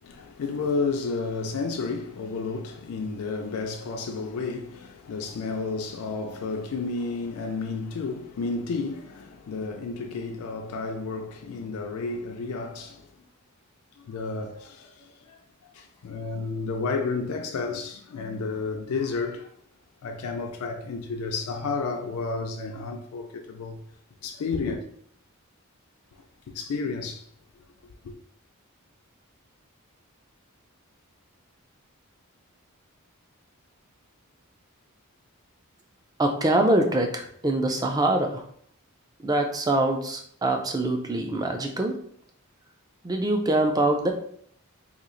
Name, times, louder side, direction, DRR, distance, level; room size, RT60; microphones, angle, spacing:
voice 1, 0.0-13.3 13.9-19.5 20.0-23.8 24.2-24.8 26.1-27.3 28.0-28.1, left 4 dB, 85° left, 0.4 m, -32 dB
voice 2, 36.2-38.5 39.2-42.0 43.0-44.1, right 1 dB, 15° right, 0.3 m, -24 dB
2.9 x 2.4 x 3.8 m
head